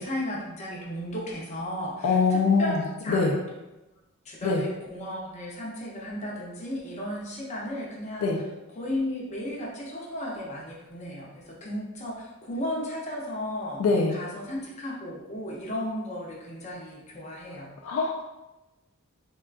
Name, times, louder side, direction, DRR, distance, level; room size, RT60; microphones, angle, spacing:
voice 1, 0.0-2.8 3.0-3.2 4.3-8.3 8.8-13.8 14.1-17.7, left 1 dB, 30° left, -4 dB, 0.6 m, -34 dB
voice 2, 2.0-3.4 4.4-4.6 8.2-8.4 13.8-14.2 17.8-18.2, left 4 dB, 75° left, 1 dB, 0.4 m, -23 dB
3.6 x 2.2 x 2.4 m, 1.0 s
head